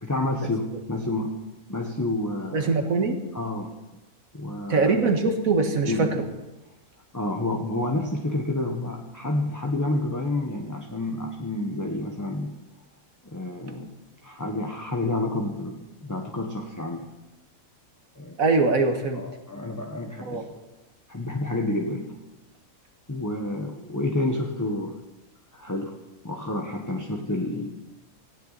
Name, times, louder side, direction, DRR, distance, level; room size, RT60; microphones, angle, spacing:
voice 1, 0.0-1.3 1.7-2.7 3.3-3.7 4.3-4.9 5.8-6.1 7.1-12.5 13.2-13.9 14.2-17.1 18.2-18.4 19.1-20.4 21.1-22.2 23.1-25.0 25.5-25.9 26.2-27.7, left 2 dB, 15° left, 1 dB, 1.1 m, -29 dB
voice 2, 2.5-3.2 4.7-6.3 18.4-19.2 20.2-20.4, right 3 dB, 65° right, 5 dB, 2.0 m, -22 dB
18.0 x 14.5 x 4.2 m, 1.1 s
omnidirectional pair, 1.5 m